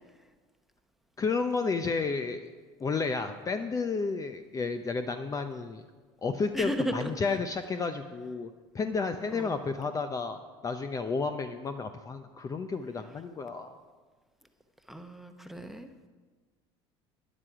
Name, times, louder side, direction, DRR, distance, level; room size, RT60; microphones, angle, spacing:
voice 1, 1.2-2.5 2.8-5.8 6.2-13.8, left 4 dB, 25° left, 8 dB, 0.6 m, -32 dB
voice 2, 6.5-7.1 9.3-9.6 14.9-15.9, equal, ahead, 6 dB, 1.0 m, -34 dB
12.5 x 10.0 x 4.9 m, 1.4 s
hypercardioid pair, 85°, 13 cm